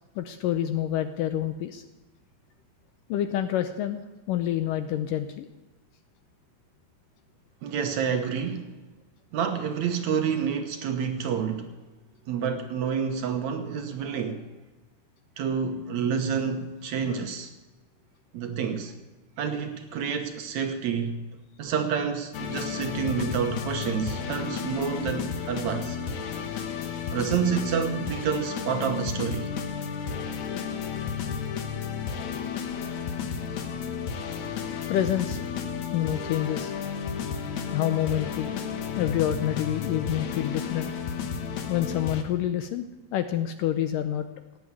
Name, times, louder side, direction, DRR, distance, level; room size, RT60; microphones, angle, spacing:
voice 1, 0.2-1.8 3.1-4.0 4.3-5.5 34.9-35.4 35.9-36.7 37.7-38.5 39.0-40.9 41.7-42.9 43.1-44.3, left 11 dB, 75° left, 2.1 m, -27 dB
voice 2, 7.6-8.7 9.3-11.7 12.3-14.5 15.4-17.5 18.3-18.9 19.4-21.3 21.6-26.0 27.1-29.5, right 7 dB, 65° right, 1.9 m, -28 dB
sound 1, 22.3-42.2, left 7 dB, 60° left, 2.2 m, -32 dB
17.5 x 8.6 x 9.4 m
omnidirectional pair, 4.4 m